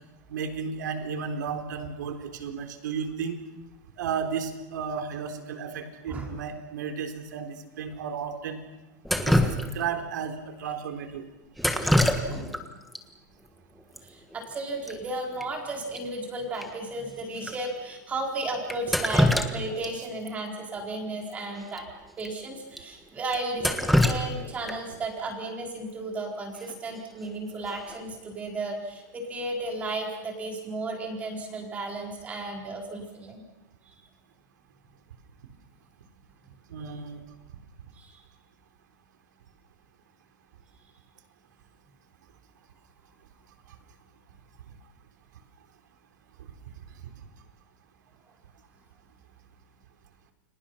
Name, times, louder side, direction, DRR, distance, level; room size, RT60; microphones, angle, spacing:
voice 1, 0.3-3.4 4.0-8.6 9.2-9.4 9.7-11.3 36.7-37.2, right 6 dB, 85° right, 5 dB, 4.0 m, -33 dB
voice 2, 6.1-6.4 10.6-10.7 12.3-12.8 13.9-21.8 22.2-33.4 33.9-34.0 37.9-38.2, right 2 dB, 15° right, 1 dB, 4.5 m, -34 dB
Drip, 9.0-10.0 11.6-12.6 12.9-13.0 14.0-14.1 14.3-14.6 14.9-15.0 15.4-15.5 15.9-16.0 16.6-16.7 17.4-17.5 18.7-19.9 20.3-20.4 21.7-21.8 22.2-22.3 22.8-22.9 23.3-25.0 27.0-27.3 27.7-28.1, left 1 dB, ahead, 1.4 m, -25 dB
30.0 x 24.5 x 5.8 m, 1.0 s
supercardioid pair, 170°, 10 cm